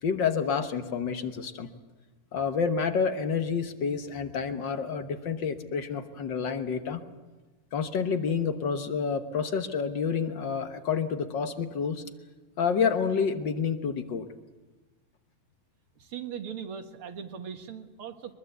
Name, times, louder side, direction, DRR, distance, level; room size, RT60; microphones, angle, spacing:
voice 1, 0.0-1.7 2.3-7.0 7.7-12.0 12.6-14.3, left 6 dB, 55° left, 8 dB, 1.3 m, -29 dB
voice 2, 16.0-18.3, right 7 dB, 50° right, 7 dB, 2.0 m, -39 dB
23.0 x 22.0 x 8.1 m, 1.2 s
omnidirectional pair, 3.4 m